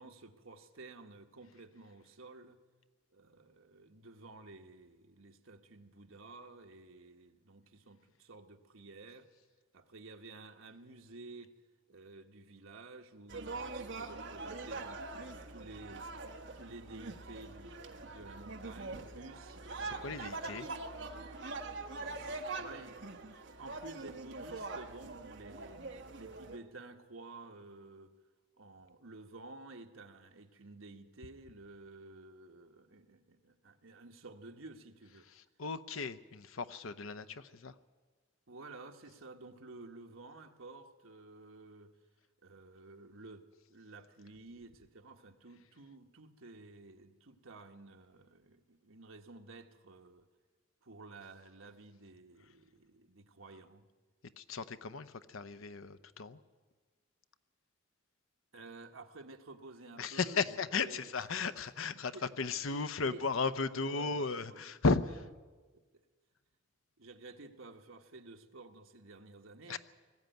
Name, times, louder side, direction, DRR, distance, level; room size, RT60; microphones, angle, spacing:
voice 1, 0.0-2.6 3.1-9.3 9.7-11.5 11.9-16.1 16.5-20.6 22.0-23.2 23.6-25.8 26.1-28.1 28.6-35.2 38.5-41.9 42.4-50.3 50.8-53.9 58.5-60.4 60.8-61.1 61.9-62.3 62.7-63.3 63.7-64.8 65.7-66.0 67.0-69.8, right 3 dB, 85° right, 4 dB, 1.4 m, -52 dB
sound 1, 13.3-26.6, right 3 dB, 60° right, 1.3 m, -43 dB
voice 2, 19.8-20.7 35.3-37.7 54.4-56.4 60.0-65.2 69.7-69.8, left 4 dB, 85° left, 12 dB, 0.8 m, -35 dB
20.0 x 14.0 x 9.2 m, 1.4 s
head